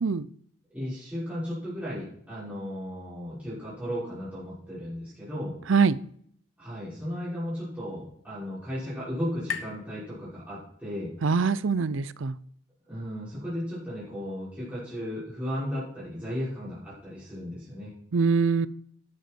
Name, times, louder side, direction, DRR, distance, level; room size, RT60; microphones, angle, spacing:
voice 1, 0.7-5.6 6.6-11.1 12.9-17.9, equal, 10° right, -11 dB, 5.6 m, -35 dB
sound 1, 7.2-10.9, left 6 dB, 70° left, 1.2 m, -43 dB
voice 2, 11.2-12.4 18.1-18.7, right 5 dB, 70° right, 17 dB, 0.5 m, -23 dB
12.0 x 9.3 x 4.4 m, 0.64 s
head